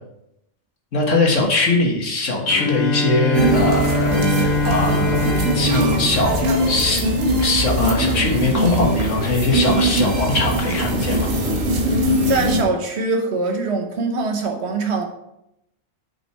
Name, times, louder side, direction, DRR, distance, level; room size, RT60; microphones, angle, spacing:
voice 1, 0.9-6.4 6.7-7.0 7.4-11.3, left 2 dB, 70° left, 0 dB, 1.8 m, -21 dB
Bowed string instrument, 2.5-7.4, left 1 dB, 85° left, 1.3 m, -23 dB
sound 1, 3.3-12.6, right 1 dB, 75° right, 1.5 m, -21 dB
voice 2, 12.3-15.0, right 3 dB, 60° right, 4 dB, 1.1 m, -22 dB
6.3 x 5.6 x 4.5 m, 0.81 s
omnidirectional pair, 1.4 m